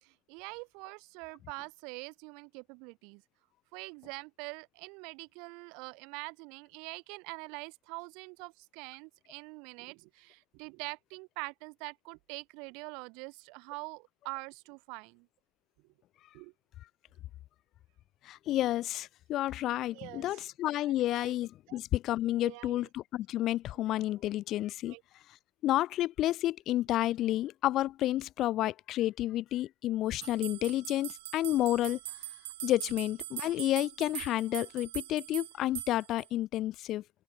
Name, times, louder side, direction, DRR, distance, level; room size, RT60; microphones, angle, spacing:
voice 1, 0.0-3.2 3.7-15.3 16.3-16.5 19.9-20.4 20.8-21.4 21.7-21.8 22.4-22.9 24.9-25.0, right 31 dB, 50° right, 2.4 m, -44 dB
voice 2, 18.2-24.9 25.6-32.0 32.6-37.0, left 14 dB, 35° left, 0.8 m, -30 dB
sound 1, 30.2-36.3, right 19 dB, 85° right, 1.1 m, -42 dB
open air
cardioid pair, 170°, 0 cm